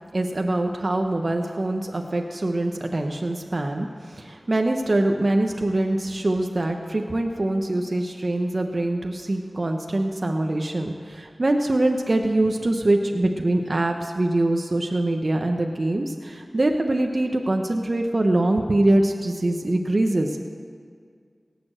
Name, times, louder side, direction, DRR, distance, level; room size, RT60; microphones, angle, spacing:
voice 1, 0.1-20.5, right 1 dB, 55° right, 4 dB, 0.9 m, -23 dB
17.5 x 7.0 x 7.7 m, 2.1 s
wide cardioid pair, 45°, 0 cm